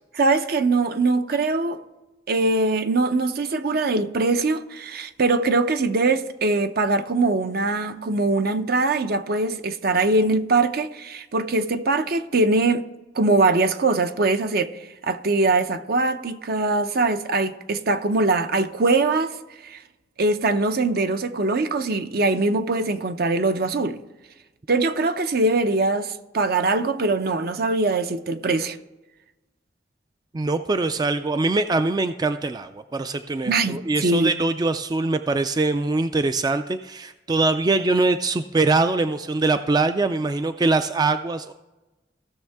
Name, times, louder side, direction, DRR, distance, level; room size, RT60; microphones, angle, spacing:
voice 1, 0.1-1.8 2.3-12.8 13.1-19.3 19.6-19.8 20.2-24.0 24.7-28.8 33.5-34.4, right 3 dB, 60° right, 0.6 m, -22 dB
voice 2, 30.3-41.5, right 3 dB, 25° right, 0.3 m, -23 dB
16.5 x 6.5 x 3.5 m
head